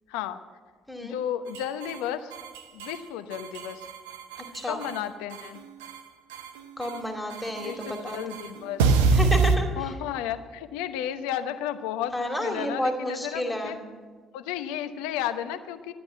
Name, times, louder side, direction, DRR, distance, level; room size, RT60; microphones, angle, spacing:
voice 1, 0.1-0.4 1.0-2.3 2.7-3.8 4.7-5.6 7.6-9.0 9.8-13.8 14.3-15.9, left 10 dB, 75° left, 10 dB, 0.9 m, -33 dB
sound 1, 1.5-2.0 2.3-3.0 3.3-5.0 5.3-6.0 6.3-7.0 7.3-9.6, right 4 dB, 85° right, 1.0 m, -26 dB
voice 2, 6.8-8.3 9.1-9.9 12.1-13.8, equal, 10° left, 2 dB, 2.4 m, -31 dB
14.0 x 9.6 x 8.9 m, 1.5 s
hypercardioid pair, 55°, 0 cm